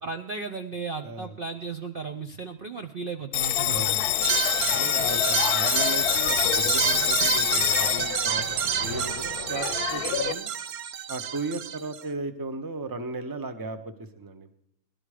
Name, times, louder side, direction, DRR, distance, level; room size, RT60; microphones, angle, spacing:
voice 1, 0.0-4.0, right 4 dB, 50° right, 6 dB, 0.7 m, -35 dB
voice 2, 1.0-1.3 3.6-4.0 4.6-10.5 11.1-14.5, right 3 dB, 15° right, 9 dB, 0.8 m, -35 dB
Bell, 3.3-10.3, left 13 dB, 85° left, 1.2 m, -26 dB
sound 1, 4.2-12.0, right 9 dB, 75° right, 1.3 m, -29 dB
18.0 x 12.0 x 4.9 m, 0.86 s
omnidirectional pair, 1.6 m